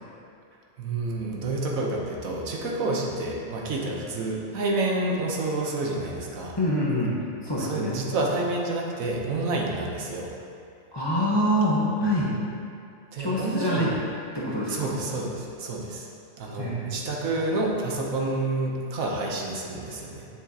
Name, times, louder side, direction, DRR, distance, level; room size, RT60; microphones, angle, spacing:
voice 1, 0.8-6.5 7.6-10.3 13.1-13.9 14.7-16.1 16.4-20.3, right 2 dB, 90° right, -1 dB, 1.4 m, -29 dB
voice 2, 6.6-7.1 7.4-7.9 10.9-12.3 13.2-13.9 14.3-14.9 16.6-16.9, equal, 20° left, -7 dB, 1.1 m, -25 dB
7.7 x 7.2 x 2.8 m, 2.5 s
omnidirectional pair, 1.4 m